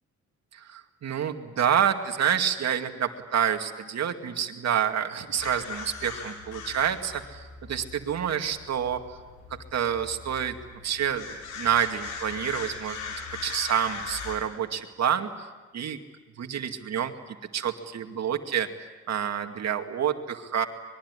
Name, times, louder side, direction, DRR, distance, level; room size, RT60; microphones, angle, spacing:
voice 1, 0.5-9.0 9.7-10.6 10.8-11.3 11.6-13.0 13.4-15.3 15.7-16.0 16.4-20.7, right 8 dB, 60° right, 5 dB, 2.4 m, -28 dB
sound 1, 5.4-14.4, left 5 dB, 85° left, 7.1 m, -40 dB
25.0 x 22.0 x 9.9 m, 1.2 s
cardioid pair, 90°, 30 cm